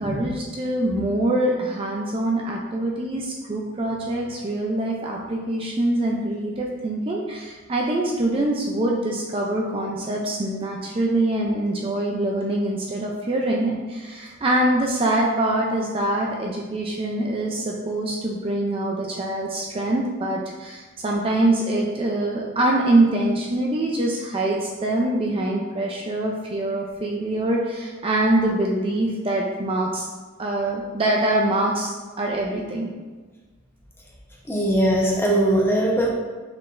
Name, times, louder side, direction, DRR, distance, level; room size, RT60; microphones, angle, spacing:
voice 1, 0.0-30.1 30.4-32.9, right 1 dB, 30° right, -2 dB, 0.4 m, -24 dB
voice 2, 34.5-36.1, right 1 dB, 10° left, -4 dB, 0.8 m, -21 dB
5.5 x 3.8 x 2.5 m, 1.3 s
head